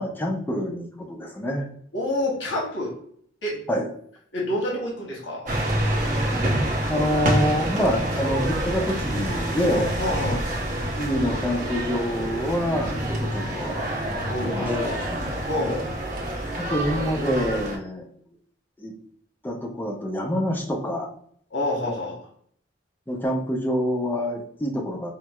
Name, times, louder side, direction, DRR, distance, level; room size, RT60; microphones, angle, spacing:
voice 1, 0.0-1.7 3.7-3.9 6.0-6.6 6.9-10.0 10.9-13.8 14.4-14.7 15.1-15.3 16.6-18.1 18.8-18.9 19.4-21.1 23.1-25.1, equal, 10° left, 0 dB, 0.5 m, -27 dB
voice 2, 1.9-2.9 3.4-3.6 4.3-5.5 9.7-10.5 12.9-13.1 14.3-15.0 15.5-15.9 21.5-22.2, left 1 dB, 85° left, -2 dB, 0.9 m, -28 dB
sound 1, 5.5-17.8, right 1 dB, 45° right, 0.7 m, -27 dB
4.5 x 2.0 x 2.2 m, 0.62 s
head